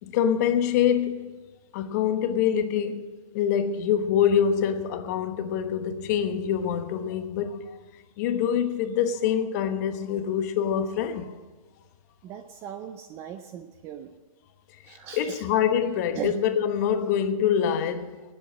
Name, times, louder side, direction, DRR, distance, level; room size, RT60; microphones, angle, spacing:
voice 1, 0.0-1.4 1.7-3.1 3.3-7.8 8.2-11.4 14.9-18.2, left 8 dB, 30° left, 1.1 m, -25 dB
voice 2, 12.2-14.1 14.8-15.4 16.2-16.3, right 9 dB, 15° right, 0.4 m, -38 dB
16.0 x 7.8 x 7.4 m
hypercardioid pair, 155°, 18 cm